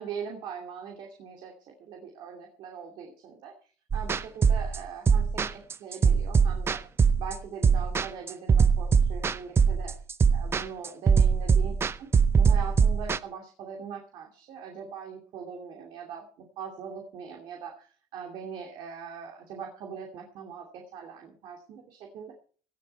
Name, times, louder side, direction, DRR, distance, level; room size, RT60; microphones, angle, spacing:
voice 1, 0.0-3.5 3.9-6.8 7.2-10.0 10.3-11.7 12.0-12.1 12.4-16.3 16.6-22.3, right 6 dB, 75° right, 2 dB, 2.7 m, -41 dB
sound 1, 3.9-13.2, right 6 dB, 30° right, 0.8 m, -22 dB
17.5 x 11.0 x 4.4 m, 0.43 s
cardioid pair, 100°, 8 cm